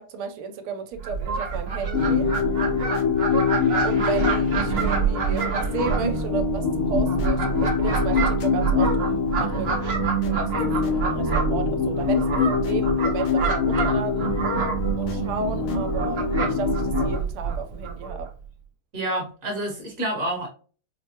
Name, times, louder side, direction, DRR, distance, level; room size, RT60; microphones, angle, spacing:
voice 1, 0.0-2.3 3.8-9.7 10.2-14.3 15.0-18.3, right 5 dB, 85° right, 1.5 m, -33 dB
Fowl, 1.0-18.3, right 5 dB, 60° right, 0.6 m, -27 dB
sound 1, 1.9-17.2, left 4 dB, 75° left, 1.5 m, -25 dB
voice 2, 18.9-20.5, right 1 dB, 45° right, 1.4 m, -28 dB
4.9 x 2.1 x 2.8 m
omnidirectional pair, 2.3 m